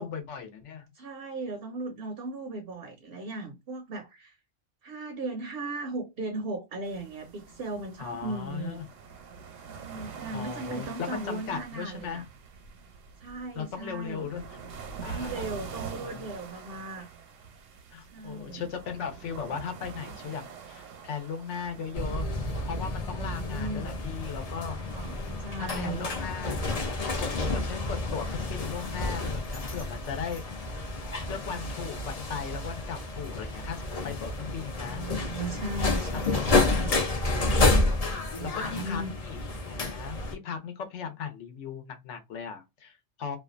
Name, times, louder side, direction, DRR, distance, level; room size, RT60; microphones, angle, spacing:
voice 1, 0.0-0.9 8.0-8.9 10.3-12.2 13.5-14.6 15.0-15.5 16.0-16.3 17.9-22.3 22.7-24.8 25.6-26.6 27.2-30.4 30.8-30.9 31.3-35.0 36.1-36.9 37.9-38.0 38.4-39.4 39.7-43.4, left 7 dB, 70° left, 1.0 m, -37 dB
voice 2, 0.9-4.4 4.8-8.8 9.7-12.2 13.2-14.3 15.0-17.1 18.1-18.7 23.0-23.9 24.9-26.1 34.8-37.0 38.3-39.1, right 2 dB, 60° right, 0.7 m, -37 dB
sound 1, 6.8-22.0, right 6 dB, 85° right, 1.0 m, -44 dB
sound 2, 21.9-40.4, left 2 dB, 45° left, 0.5 m, -30 dB
2.5 x 2.2 x 2.4 m
omnidirectional pair, 1.3 m